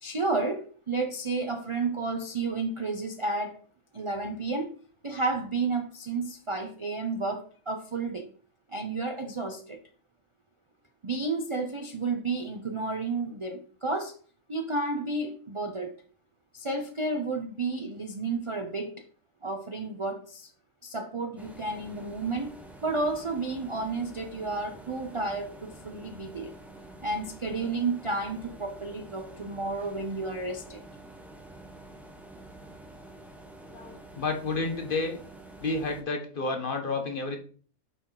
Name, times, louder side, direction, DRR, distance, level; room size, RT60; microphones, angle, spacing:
voice 1, 0.0-3.6 3.9-4.7 5.0-8.3 8.7-9.8 11.0-14.1 14.5-16.0 16.5-18.9 19.4-20.5 20.8-22.5 22.8-26.5 27.0-30.8, right 3 dB, 40° right, 4 dB, 0.4 m, -31 dB
sound 1, 21.3-36.0, right 2 dB, ahead, 0.9 m, -48 dB
voice 2, 33.7-35.2 35.6-37.4, left 3 dB, 40° left, 4 dB, 1.1 m, -30 dB
6.4 x 5.5 x 3.9 m, 0.43 s
omnidirectional pair, 1.5 m